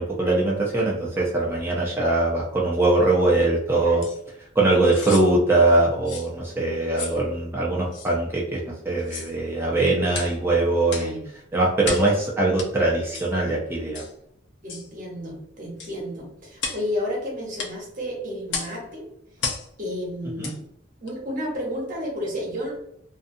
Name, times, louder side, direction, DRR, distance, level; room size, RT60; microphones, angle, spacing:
voice 1, 0.0-4.0 4.6-11.1 11.5-14.0 20.4-20.5, right 2 dB, 10° right, -4 dB, 0.4 m, -22 dB
sound 1, 4.0-4.2 4.8-5.3 6.1-6.3 7.0-7.2 7.9-8.1 9.0-9.3 10.1-10.4 10.9-11.1 11.8-12.1 12.6-12.7 13.1-13.3 13.9-14.1 14.7-14.9 15.8-16.0 16.6-16.9 17.6-17.8 18.5-18.8 19.4-19.7 20.4-20.6 21.1-21.2, left 4 dB, 65° left, 0.5 m, -32 dB
voice 2, 14.6-19.1 19.8-20.6 21.0-22.8, equal, 45° right, -2 dB, 0.9 m, -32 dB
2.5 x 2.2 x 2.6 m, 0.74 s
head